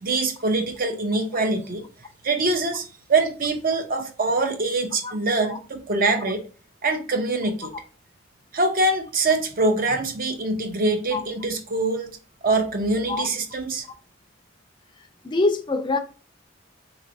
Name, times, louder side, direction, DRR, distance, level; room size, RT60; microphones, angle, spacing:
voice 1, 0.0-1.8 2.2-6.4 6.8-7.7 8.5-12.2 12.4-13.9, right 2 dB, 50° right, 0.7 m, -24 dB
voice 2, 15.2-16.0, left 3 dB, 25° left, 0.4 m, -24 dB
3.9 x 3.1 x 2.5 m
head